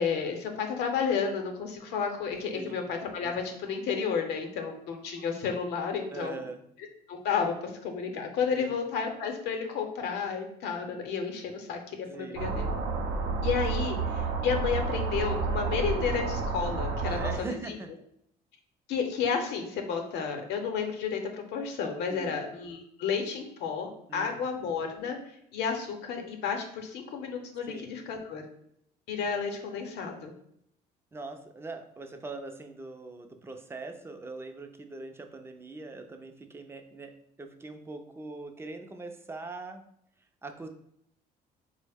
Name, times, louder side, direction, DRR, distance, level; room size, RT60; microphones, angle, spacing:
voice 1, 0.0-6.3 7.1-12.6 13.4-17.3 17.7-17.8 18.9-28.4 29.1-30.3, left 6 dB, 80° left, 4 dB, 0.7 m, -32 dB
voice 2, 6.1-6.6 8.5-8.8 12.1-12.5 17.0-17.9 22.1-22.4 24.1-24.4 27.7-28.0 31.1-37.1 37.4-39.8 40.4-40.7, right 3 dB, 15° right, 6 dB, 0.4 m, -41 dB
sound 1, 12.4-17.4, right 4 dB, 85° right, 0.5 m, -30 dB
3.9 x 2.0 x 3.4 m, 0.71 s
cardioid pair, 110°, 17 cm